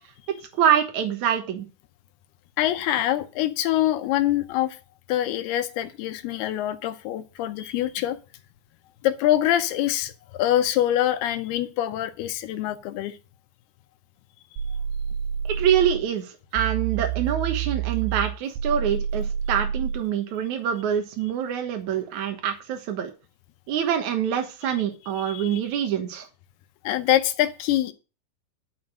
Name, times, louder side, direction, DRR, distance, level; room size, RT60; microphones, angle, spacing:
voice 1, 0.6-1.7 15.4-23.1 23.7-26.3, right 9 dB, 60° right, 2.0 m, -25 dB
voice 2, 2.6-4.8 5.1-8.2 9.0-13.2 25.2-25.6 26.8-27.9, left 13 dB, 75° left, 2.6 m, -24 dB
sound 1, 14.6-16.0 16.6-20.0, right 8 dB, 90° right, 3.5 m, -28 dB
11.5 x 5.8 x 6.3 m
omnidirectional pair, 5.0 m